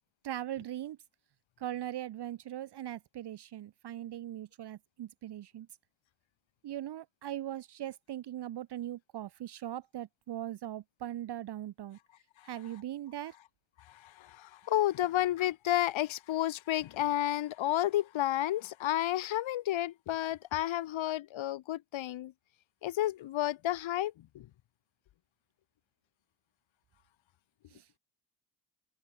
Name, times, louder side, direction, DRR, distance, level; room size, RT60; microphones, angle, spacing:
voice 1, 0.2-1.0 1.6-5.7 6.6-12.0 12.4-13.3 27.7-27.8, right 12 dB, 55° right, 1.0 m, -40 dB
voice 2, 14.0-22.3 22.8-24.5, left 13 dB, 70° left, 1.9 m, -31 dB
supercardioid pair, 65°, 48 cm